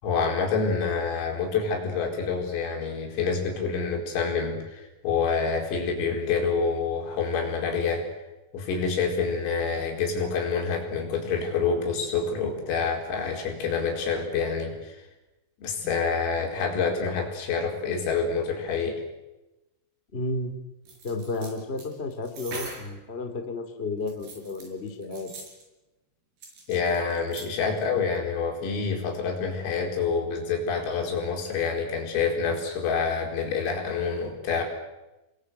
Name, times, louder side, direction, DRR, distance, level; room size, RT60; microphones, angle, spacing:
voice 1, 0.0-8.1 8.5-15.0 15.6-19.0 26.7-34.6, left 5 dB, 90° left, 2 dB, 7.2 m, -27 dB
voice 2, 20.1-20.6 21.0-25.3, left 2 dB, 20° left, 6 dB, 1.5 m, -32 dB
sound 1, 20.9-23.0 24.0-25.6 26.4-27.5 27.8-27.9, right 3 dB, 50° right, 7.6 m, -42 dB
29.0 x 22.0 x 8.1 m, 1.0 s
omnidirectional pair, 5.9 m